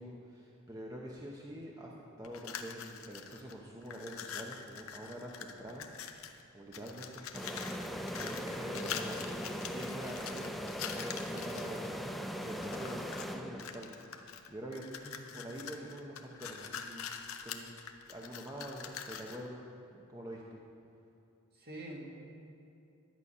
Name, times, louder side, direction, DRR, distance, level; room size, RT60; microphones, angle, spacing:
voice 1, 0.0-5.9 6.2-6.3 6.5-7.5 7.8-9.4 9.7-12.2 12.4-14.9 15.3-17.0 17.4-17.7 18.1-20.6, equal, 15° right, -2 dB, 0.8 m, -46 dB
sound 1, 2.2-3.5 3.8-6.4 6.7-11.9 12.4-13.3 13.6-19.5, left 7 dB, 65° left, 0.7 m, -44 dB
sound 2, 7.3-14.0, equal, ahead, 0.4 m, -40 dB
voice 2, 21.5-22.0, right 1 dB, 45° right, -1 dB, 1.8 m, -46 dB
11.0 x 8.3 x 5.4 m, 2.7 s
head